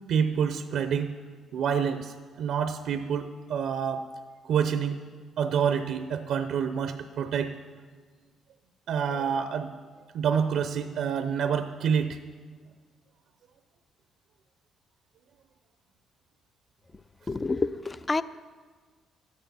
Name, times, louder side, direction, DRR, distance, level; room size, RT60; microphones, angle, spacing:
voice 1, 0.1-1.1 1.5-4.1 4.5-5.0 5.4-7.5 8.9-9.7 10.1-12.2, right 7 dB, 75° right, 9 dB, 0.6 m, -27 dB
voice 2, 17.3-18.2, left 3 dB, 25° left, 16 dB, 0.4 m, -28 dB
12.0 x 9.3 x 5.7 m, 1.5 s
cardioid pair, 85°, 0 cm